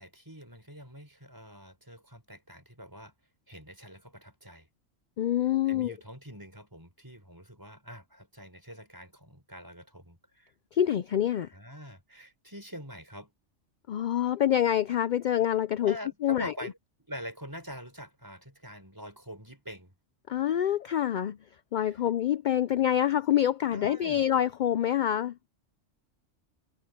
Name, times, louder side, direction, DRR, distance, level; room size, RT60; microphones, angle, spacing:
voice 1, 0.0-3.1 3.5-4.7 5.7-10.5 11.5-13.3 15.8-19.9 21.8-22.0 23.7-24.2, equal, 15° right, 5.2 m, -45 dB
voice 2, 5.2-5.9 10.7-11.5 13.9-15.9 16.2-16.5 20.3-21.4 21.7-25.3, left 10 dB, 60° left, 0.5 m, -26 dB
omnidirectional pair, 1.3 m